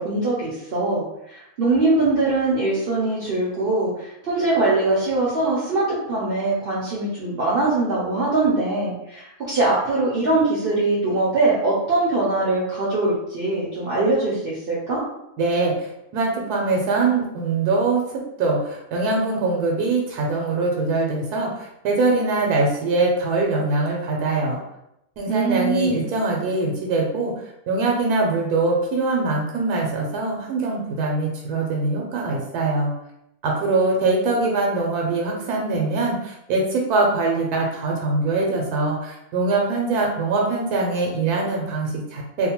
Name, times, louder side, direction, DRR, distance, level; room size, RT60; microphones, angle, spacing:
voice 1, 0.0-15.0 25.3-26.1, right 2 dB, 60° right, -6 dB, 0.6 m, -22 dB
voice 2, 15.4-24.6 25.2-27.3 27.7-32.9 33.4-42.5, right 3 dB, 85° right, -1 dB, 1.1 m, -23 dB
2.8 x 2.1 x 2.9 m, 0.82 s
omnidirectional pair, 1.6 m